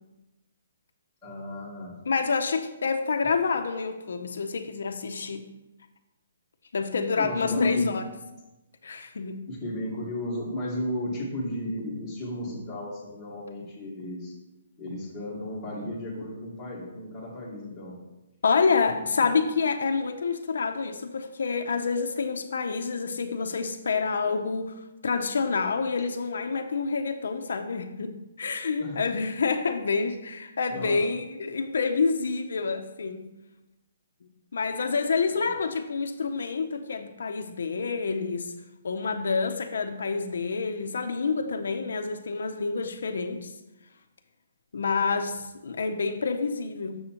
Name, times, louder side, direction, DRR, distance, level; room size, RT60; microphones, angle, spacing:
voice 1, 1.2-2.0 7.2-7.9 9.5-14.3 14.8-18.0 28.8-29.0 30.7-31.0 35.3-35.5 45.0-45.4, left 1 dB, 5° left, -9 dB, 1.4 m, -35 dB
voice 2, 2.1-5.4 6.7-8.0 8.8-9.4 18.4-33.3 34.5-38.5 38.8-43.5 44.7-47.0, left 4 dB, 70° left, 6 dB, 0.5 m, -28 dB
7.6 x 6.9 x 2.9 m, 1.0 s
hypercardioid pair, 175°, 0 cm